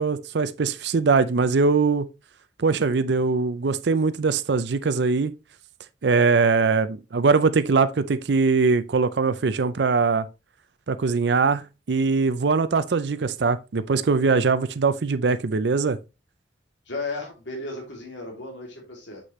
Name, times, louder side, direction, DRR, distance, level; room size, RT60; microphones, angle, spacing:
voice 1, 0.0-2.1 2.6-5.3 6.0-10.3 10.9-11.6 11.9-16.0, right 4 dB, 65° right, 0.5 m, -21 dB
voice 2, 16.8-19.2, left 2 dB, 85° left, 2.7 m, -34 dB
7.6 x 6.4 x 3.1 m
head